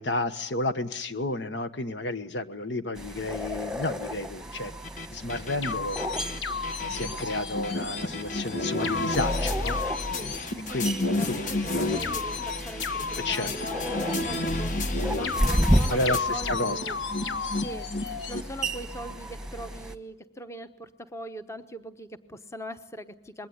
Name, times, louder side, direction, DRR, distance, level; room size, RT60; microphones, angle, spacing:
voice 1, 0.0-4.7 5.1-6.0 6.8-9.8 10.7-11.9 13.2-13.5 15.9-16.8, left 2 dB, 70° left, 11 dB, 1.3 m, -31 dB
sound 1, 3.0-20.0, equal, 5° right, 1.3 m, -33 dB
sound 2, 4.8-16.2, left 1 dB, 45° left, 1.4 m, -34 dB
sound 3, 5.6-18.4, left 3 dB, 85° left, 1.4 m, -32 dB
voice 2, 10.7-17.0 17.5-23.5, right 1 dB, 15° left, 9 dB, 1.0 m, -41 dB
26.0 x 21.5 x 9.6 m, 0.79 s
head